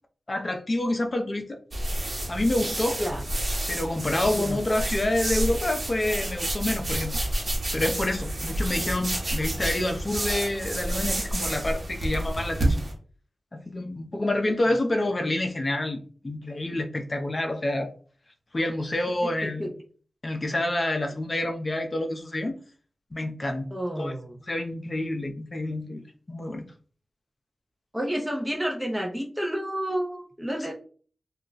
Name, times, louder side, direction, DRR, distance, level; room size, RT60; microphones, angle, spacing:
voice 1, 0.3-1.6 2.3-3.0 3.7-7.2 7.7-12.8 13.5-17.9 18.5-19.7 20.2-22.6 23.1-23.7 24.0-24.1 24.5-26.6, left 1 dB, 40° left, 5 dB, 0.6 m, -28 dB
sound 1, 1.7-12.9, right 1 dB, 45° right, 1.0 m, -29 dB
voice 2, 19.4-19.7 23.7-24.3 27.9-30.7, equal, 5° right, 0 dB, 0.6 m, -30 dB
2.4 x 2.1 x 3.8 m, 0.42 s
cardioid pair, 50°, 0 cm